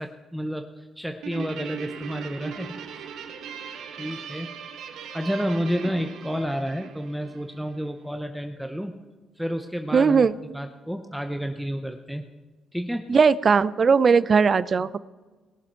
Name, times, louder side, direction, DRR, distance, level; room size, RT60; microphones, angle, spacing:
voice 1, 0.0-3.1 4.0-4.6 5.1-9.0 9.4-10.3 10.5-12.2 12.7-13.0, equal, ahead, 5 dB, 0.8 m, -30 dB
Guitar, 1.2-7.9, right 7 dB, 80° right, 1.0 m, -39 dB
voice 2, 9.9-10.3 13.1-15.0, right 5 dB, 40° right, 17 dB, 0.5 m, -18 dB
19.0 x 7.3 x 4.5 m, 1.3 s
cardioid pair, 90°, 0 cm